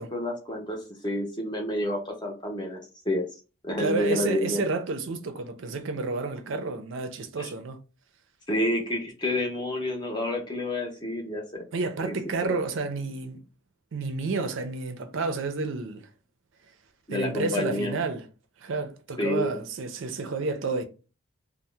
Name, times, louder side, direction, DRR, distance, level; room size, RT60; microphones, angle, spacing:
voice 1, 0.0-2.8 3.0-3.3 3.6-4.6 7.4-7.5 8.5-11.7 12.0-12.1 12.4-12.5 17.1-18.0 19.2-19.6, left 1 dB, 20° left, 0.6 m, -29 dB
voice 2, 3.8-7.8 11.7-13.4 13.9-16.1 17.1-18.3 18.6-20.8, right 3 dB, 65° right, 0.4 m, -30 dB
2.7 x 2.0 x 3.2 m
head